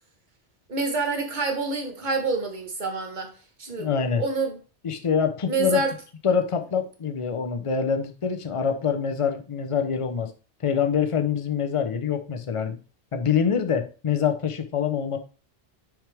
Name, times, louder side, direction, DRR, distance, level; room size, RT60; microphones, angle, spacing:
voice 1, 0.7-3.3 3.6-4.6 5.5-5.9, right 4 dB, 40° right, 1.4 m, -27 dB
voice 2, 3.8-4.2 4.8-5.8 6.2-10.3 10.6-12.8 13.1-15.2, left 7 dB, 35° left, 0.6 m, -25 dB
6.1 x 5.0 x 3.4 m
omnidirectional pair, 1.2 m